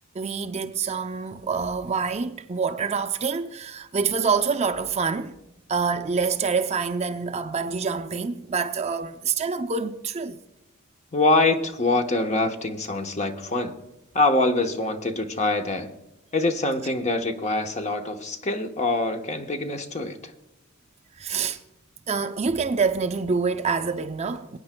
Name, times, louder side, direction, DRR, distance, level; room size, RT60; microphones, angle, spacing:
voice 1, 0.1-5.3 5.7-10.4 21.2-21.6 22.1-24.6, right 5 dB, 30° right, 0.5 m, -26 dB
voice 2, 11.1-13.7 14.1-15.9 16.3-20.3, left 2 dB, 30° left, 1.0 m, -24 dB
23.5 x 9.5 x 2.2 m
head